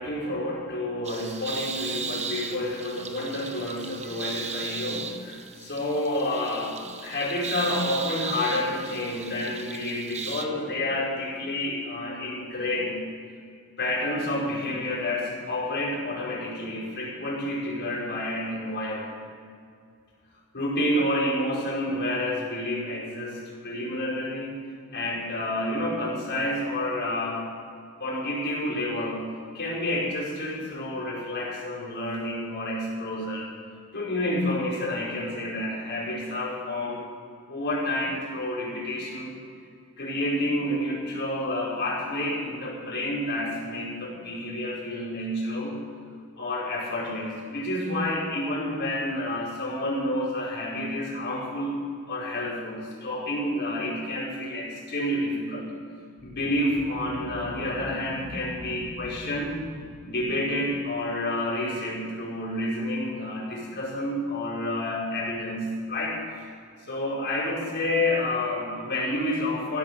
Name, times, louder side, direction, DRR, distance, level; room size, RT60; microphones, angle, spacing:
voice 1, 0.0-13.0 13.8-19.1 20.5-24.6 24.9-27.4 28.0-29.3 29.5-33.5 33.9-37.0 37.5-39.3 40.0-45.8 46.4-51.8 52.1-55.7 56.2-59.5 60.0-66.2 66.9-69.8, left 1 dB, 50° left, -4 dB, 4.9 m, -29 dB
sound 1, 1.0-10.5, right 5 dB, 30° right, 1.0 m, -36 dB
sound 2, 56.2-60.6, equal, 80° left, 2.9 m, -42 dB
16.0 x 9.1 x 8.0 m, 2.3 s
head